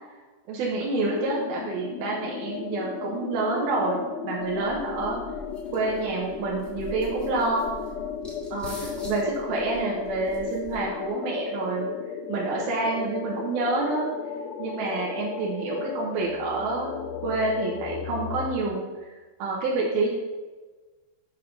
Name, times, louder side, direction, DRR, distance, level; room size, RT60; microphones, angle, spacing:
voice 1, 0.5-5.2 5.7-7.7 8.5-11.9 12.3-14.1 14.6-20.1, right 3 dB, 70° right, -4 dB, 2.8 m, -28 dB
sound 1, 0.9-18.5, left 7 dB, 80° left, 2.2 m, -35 dB
sound 2, 4.4-11.1, equal, ahead, 1.2 m, -44 dB
6.6 x 5.6 x 6.6 m, 1.3 s
omnidirectional pair, 4.9 m